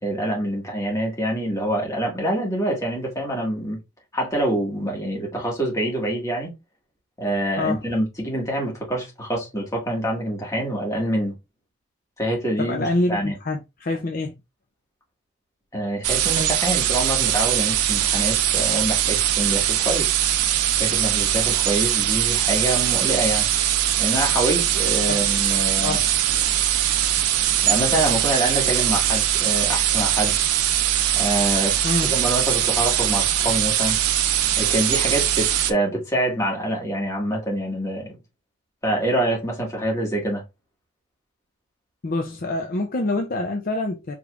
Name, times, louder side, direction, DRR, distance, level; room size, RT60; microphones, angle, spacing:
voice 1, 0.0-3.8 4.1-6.5 7.2-11.3 12.2-13.3 15.7-20.1 20.8-23.5 24.0-26.0 27.6-30.3 31.1-31.8 32.1-34.0 34.6-38.2 38.8-40.4, right 1 dB, 15° left, 1.8 m, -25 dB
voice 2, 12.6-14.3 25.1-25.3 25.8-26.0 31.8-32.1 42.0-44.2, left 2 dB, 40° left, 0.5 m, -26 dB
sound 1, 16.0-35.7, right 11 dB, 90° right, 0.5 m, -21 dB
5.0 x 3.2 x 2.4 m
head